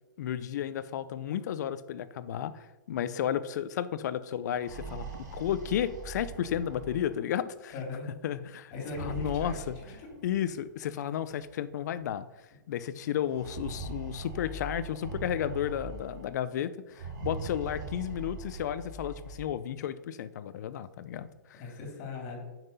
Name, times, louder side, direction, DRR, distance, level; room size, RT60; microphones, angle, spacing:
voice 1, 0.2-7.7 8.2-8.7 9.0-9.8 10.2-12.3 12.7-21.6, left 10 dB, 60° left, 15 dB, 0.6 m, -33 dB
sound 1, 4.4-7.3 8.7-10.4 11.4-11.5 11.8-11.9 13.2-16.3 16.9-19.5, right 3 dB, 60° right, 2.0 m, -41 dB
voice 2, 7.7-8.1 8.7-10.1 21.5-22.4, left 3 dB, 40° left, 2 dB, 3.0 m, -40 dB
8.1 x 5.9 x 5.4 m, 1.1 s
hypercardioid pair, 135°, 10 cm